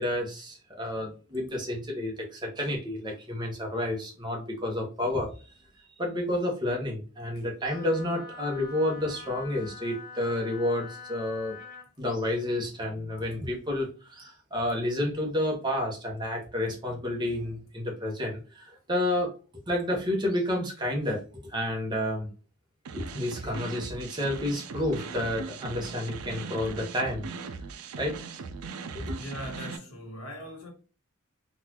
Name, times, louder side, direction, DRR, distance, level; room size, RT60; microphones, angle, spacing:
voice 1, 0.0-5.4 6.0-11.6 12.0-19.3 19.7-22.3 22.9-27.5 28.0-28.1 28.9-29.2, left 1 dB, 20° right, 1.0 m, -30 dB
Wind instrument woodwind instrument, 7.7-11.9, left 4 dB, 40° left, 0.6 m, -45 dB
sound 1, 22.8-29.8, right 4 dB, 85° right, 0.5 m, -39 dB
voice 2, 29.1-30.7, equal, 85° left, 1.3 m, -40 dB
4.0 x 2.4 x 2.8 m
head